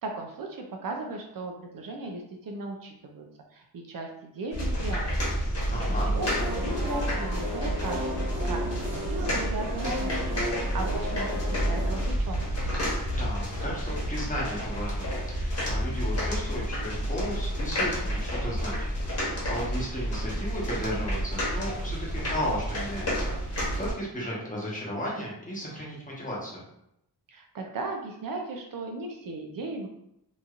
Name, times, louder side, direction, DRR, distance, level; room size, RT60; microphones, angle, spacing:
voice 1, 0.0-10.2 10.7-12.5 27.3-29.9, right 2 dB, 55° right, 2 dB, 0.5 m, -37 dB
sound 1, 4.5-23.9, equal, 40° left, 1.2 m, -30 dB
voice 2, 5.6-6.1 13.1-18.9 19.2-26.6, equal, 20° left, -5 dB, 1.0 m, -35 dB
sound 2, 6.1-12.0, left 1 dB, 30° right, 0.9 m, -34 dB
3.0 x 2.6 x 2.4 m, 0.78 s
wide cardioid pair, 105°, 40 cm